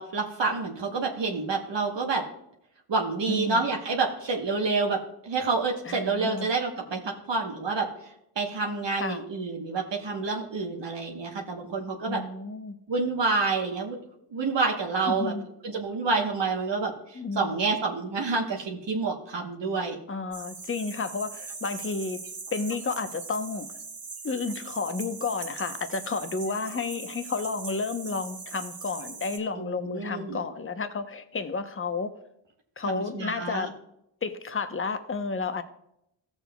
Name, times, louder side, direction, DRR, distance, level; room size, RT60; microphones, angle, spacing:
voice 1, 0.0-2.2 2.9-12.2 12.9-14.0 14.3-15.3 15.6-20.0 29.6-30.4 32.9-33.7, right 4 dB, 70° right, 0 dB, 1.2 m, -28 dB
voice 2, 3.3-3.6 5.8-6.5 9.0-9.2 12.1-12.7 15.1-15.4 17.1-17.7 20.1-22.2 22.5-23.7 24.2-32.1 32.8-33.7 34.2-35.6, left 4 dB, 30° left, 9 dB, 0.8 m, -31 dB
sound 1, 20.3-29.4, right 4 dB, 50° right, 1.3 m, -40 dB
14.5 x 7.1 x 2.2 m, 0.79 s
cardioid pair, 55°, 45 cm